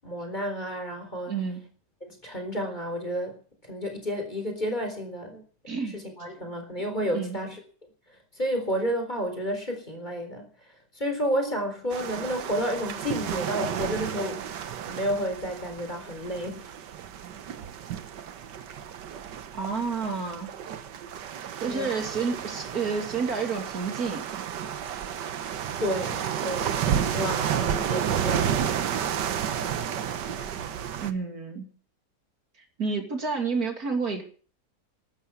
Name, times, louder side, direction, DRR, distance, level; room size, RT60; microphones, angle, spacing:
voice 1, 0.0-1.3 2.0-3.4 3.6-5.4 5.9-7.6 8.3-10.5 10.9-14.4 14.9-16.6 21.6-21.9 25.8-28.8, equal, 25° left, 5 dB, 4.2 m, -31 dB
voice 2, 1.3-1.7 5.7-6.0 7.1-7.4 19.5-20.5 21.6-24.3 31.0-31.7 32.8-34.2, right 5 dB, 60° right, 4 dB, 3.2 m, -30 dB
sound 1, 11.9-31.1, right 9 dB, 85° right, 1.7 m, -31 dB
13.0 x 12.5 x 7.2 m, 0.42 s
omnidirectional pair, 1.8 m